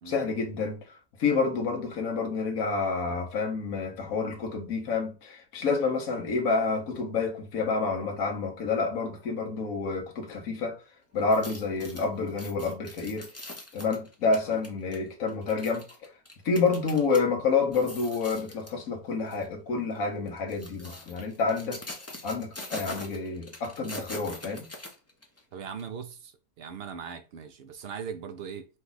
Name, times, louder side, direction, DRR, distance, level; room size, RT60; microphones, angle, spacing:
voice 1, 0.1-10.8 11.1-13.3 13.7-15.8 16.4-24.7, left 4 dB, 70° left, 1.4 m, -29 dB
sound 1, 11.2-17.2 17.6-18.8 19.3-19.5 20.3-25.4 25.8-25.9, left 2 dB, 15° left, 0.5 m, -43 dB
voice 2, 25.5-28.7, right 7 dB, 60° right, 0.6 m, -40 dB
5.2 x 2.4 x 3.8 m
omnidirectional pair, 1.5 m